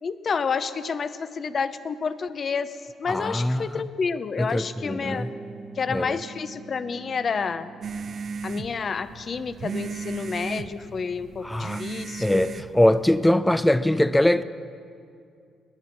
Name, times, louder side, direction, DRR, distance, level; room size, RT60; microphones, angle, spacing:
voice 1, 0.0-2.7 3.0-5.3 5.8-7.7 8.4-12.5, left 5 dB, 45° left, 0.7 m, -29 dB
voice 2, 3.1-3.8 4.4-5.3 5.9-6.2 11.4-11.8 12.2-14.4, left 1 dB, 10° left, 0.4 m, -22 dB
sound 1, 4.8-12.6, right 3 dB, 20° right, 1.1 m, -45 dB
sound 2, 7.8-13.3, right 5 dB, 50° right, 0.5 m, -36 dB
21.5 x 9.5 x 5.9 m
cardioid pair, 90°, 0 cm